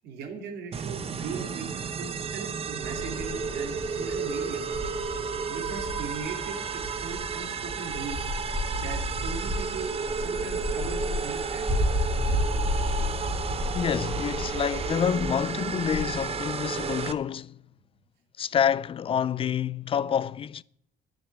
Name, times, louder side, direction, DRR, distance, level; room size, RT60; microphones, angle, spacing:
voice 1, 0.0-1.7 2.0-4.6 5.5-8.3 8.8-11.7, right 5 dB, 75° right, 2.7 m, -39 dB
sound 1, 0.7-17.1, right 6 dB, 35° right, 0.8 m, -33 dB
sound 2, 2.8-17.1, left 1 dB, 5° left, 2.4 m, -33 dB
voice 2, 13.7-17.6 18.4-20.6, left 8 dB, 35° left, 0.4 m, -27 dB
10.0 x 8.0 x 8.2 m
cardioid pair, 110°, 17 cm